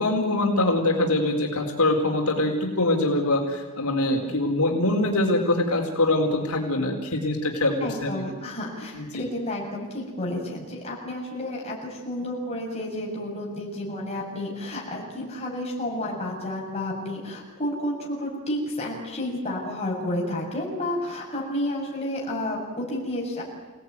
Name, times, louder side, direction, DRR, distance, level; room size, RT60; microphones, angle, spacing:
voice 1, 0.0-8.2 9.0-9.3, left 2 dB, 85° left, 1 dB, 4.3 m, -24 dB
voice 2, 7.8-23.4, left 1 dB, 30° left, -2 dB, 7.4 m, -31 dB
28.5 x 18.5 x 9.7 m, 1.3 s
head